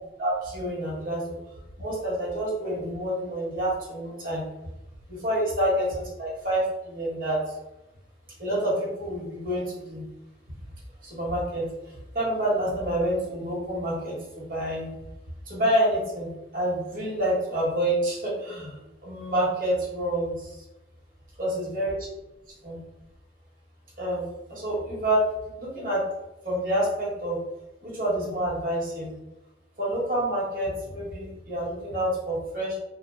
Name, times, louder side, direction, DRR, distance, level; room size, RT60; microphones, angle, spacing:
voice 1, 0.2-1.4 1.8-4.4 5.1-7.6 8.4-10.0 11.0-14.9 15.5-20.6 21.4-21.9 22.6-22.8 24.0-24.2 24.5-25.3 25.6-26.0 26.4-27.4 27.8-29.2 29.8-32.8, right 1 dB, 50° right, -5 dB, 1.2 m, -28 dB
2.7 x 2.0 x 3.3 m, 0.94 s
head